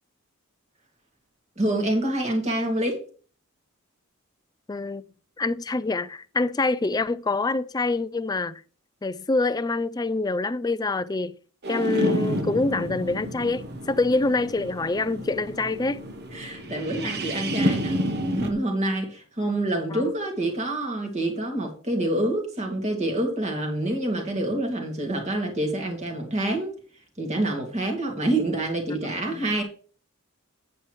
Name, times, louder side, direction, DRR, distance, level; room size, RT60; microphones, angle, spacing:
voice 1, 1.6-3.0 16.3-18.0 18.3-26.7 27.2-29.6, right 1 dB, 30° right, 2.2 m, -27 dB
voice 2, 4.7-5.0 5.4-8.6 9.0-11.4 11.7-16.1 19.9-20.1 28.9-29.0 29.3-29.4, left 3 dB, 15° left, 0.3 m, -26 dB
sound 1, 11.6-18.5, equal, 45° right, 1.0 m, -29 dB
9.0 x 8.6 x 3.1 m
head